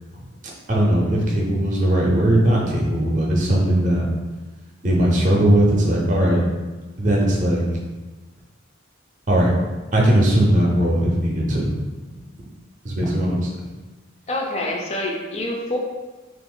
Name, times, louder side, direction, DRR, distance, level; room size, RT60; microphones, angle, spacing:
voice 1, 0.4-4.1 4.8-6.4 7.0-7.6 9.3-9.5 9.9-11.7 12.8-13.5, right 1 dB, 40° right, -2 dB, 0.6 m, -19 dB
voice 2, 14.3-15.8, left 1 dB, 30° left, -1 dB, 0.4 m, -26 dB
2.5 x 2.4 x 3.7 m, 1.3 s
head